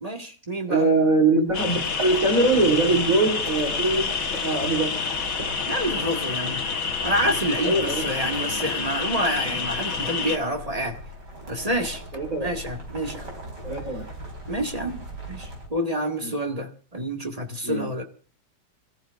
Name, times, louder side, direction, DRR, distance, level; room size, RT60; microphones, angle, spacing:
voice 1, 0.0-0.9 5.7-6.6 7.0-11.0 11.5-12.0 12.4-13.3 14.5-15.0 15.3-18.0, right 1 dB, 20° right, 1.9 m, -28 dB
voice 2, 0.7-4.9 7.6-8.1 12.1-12.5 13.6-14.0 16.2-16.3 17.6-17.9, right 2 dB, 50° right, 4.4 m, -22 dB
sound 1, 1.5-10.4, left 5 dB, 55° left, 1.8 m, -28 dB
sound 2, 1.5-15.7, right 1 dB, 70° right, 5.4 m, -39 dB
27.0 x 14.5 x 2.6 m
omnidirectional pair, 1.9 m